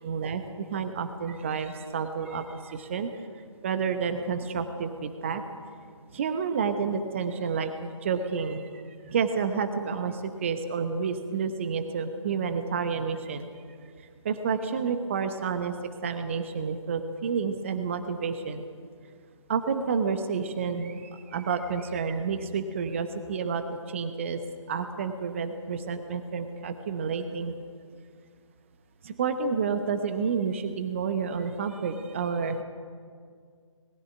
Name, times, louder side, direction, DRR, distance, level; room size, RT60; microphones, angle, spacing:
voice 1, 0.0-3.2 3.6-5.4 6.1-13.4 14.2-15.8 16.0-18.6 19.5-24.4 24.7-27.5 29.0-32.6, right 5 dB, 25° right, 8 dB, 0.9 m, -30 dB
20.0 x 15.0 x 9.1 m, 2.1 s
figure-of-eight pair, 150°, 17 cm